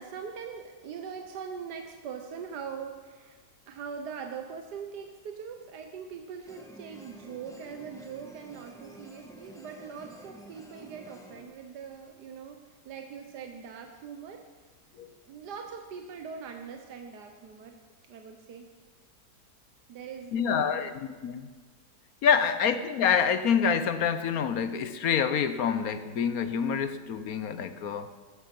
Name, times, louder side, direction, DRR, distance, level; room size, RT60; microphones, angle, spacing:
voice 1, 0.0-3.4 3.7-14.4 15.2-17.8 18.1-18.7 19.9-20.8 22.2-22.5, right 6 dB, 85° right, 4 dB, 1.6 m, -42 dB
sound 1, 6.5-11.4, right 1 dB, ahead, 1.5 m, -50 dB
voice 2, 20.3-21.5 22.2-28.1, left 7 dB, 65° left, 11 dB, 1.2 m, -27 dB
14.5 x 13.0 x 5.9 m, 1.4 s
omnidirectional pair, 1.7 m